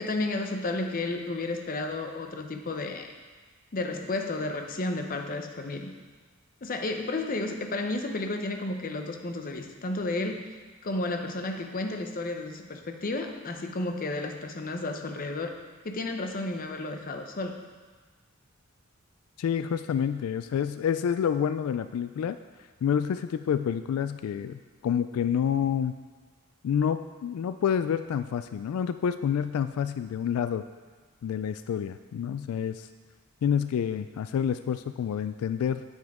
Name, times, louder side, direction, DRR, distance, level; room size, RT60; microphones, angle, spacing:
voice 1, 0.0-3.1 3.7-5.9 6.6-15.6 15.8-17.6, left 2 dB, 40° left, 5 dB, 0.6 m, -32 dB
voice 2, 19.4-22.4 22.8-26.0 26.6-30.6 31.2-32.9 33.4-35.8, left 8 dB, 90° left, 14 dB, 0.3 m, -28 dB
9.0 x 7.3 x 3.5 m, 1.4 s
head